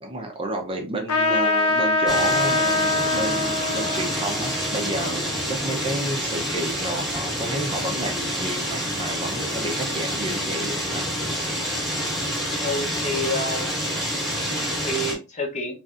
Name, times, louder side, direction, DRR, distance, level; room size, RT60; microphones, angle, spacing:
voice 1, 0.0-11.8, right 1 dB, 25° right, 0.6 m, -31 dB
Trumpet, 1.1-6.1, left 2 dB, 80° left, 0.7 m, -24 dB
sound 1, 2.1-15.1, equal, ahead, 1.2 m, -28 dB
voice 2, 12.6-13.8 14.4-15.7, left 1 dB, 30° left, 0.8 m, -29 dB
3.9 x 3.2 x 2.4 m
head